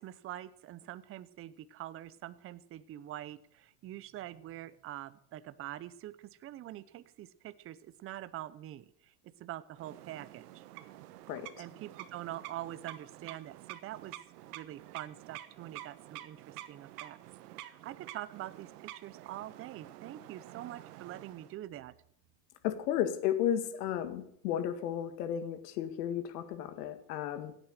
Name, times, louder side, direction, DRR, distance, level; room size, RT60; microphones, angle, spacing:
voice 1, 0.0-10.6 11.6-17.2 17.6-21.9, right 13 dB, 30° right, 15 dB, 0.7 m, -45 dB
sound 1, 9.8-21.6, right 14 dB, 75° right, 1.3 m, -49 dB
voice 2, 22.6-27.6, left 10 dB, 75° left, 11 dB, 2.0 m, -33 dB
16.5 x 9.0 x 6.6 m, 0.69 s
supercardioid pair, 125°, 47 cm